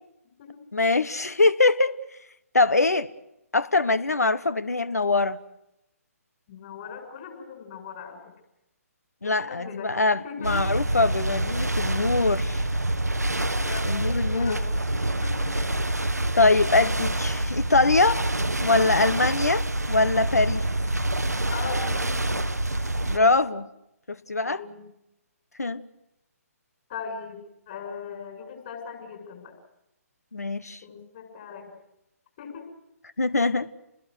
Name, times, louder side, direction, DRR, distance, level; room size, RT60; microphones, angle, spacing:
voice 1, 0.7-2.0 2.5-3.1 3.5-5.4 9.2-12.6 13.9-14.6 16.3-18.3 18.6-20.6 23.1-23.7 24.1-24.6 25.6-25.8 30.3-30.8 33.2-33.7, left 3 dB, 75° left, 18 dB, 1.1 m, -23 dB
voice 2, 6.5-8.2 9.2-10.7 13.5-14.7 15.1-15.5 21.5-22.1 24.4-24.8 26.9-29.5 30.8-31.7 32.4-32.7, left 6 dB, 35° left, 3 dB, 6.6 m, -39 dB
sound 1, 10.4-23.2, right 1 dB, 85° right, 1.0 m, -27 dB
28.5 x 21.0 x 6.4 m, 0.87 s
figure-of-eight pair, 135°, 9 cm